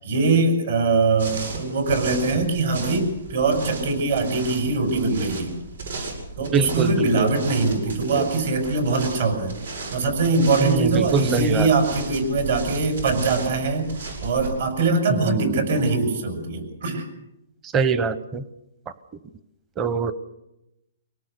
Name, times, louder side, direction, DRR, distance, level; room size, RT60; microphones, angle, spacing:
voice 1, 0.0-5.5 6.4-9.5 9.9-13.9 14.2-17.1, right 3 dB, 60° right, 6 dB, 6.5 m, -22 dB
sound 1, 1.2-14.5, right 3 dB, 85° right, 7.6 m, -35 dB
voice 2, 6.5-7.4 8.2-8.3 10.6-11.7 15.1-15.8 17.6-18.4 19.8-20.1, right 5 dB, 15° right, 14 dB, 0.8 m, -24 dB
25.0 x 18.0 x 6.8 m, 0.88 s
hypercardioid pair, 165°, 0 cm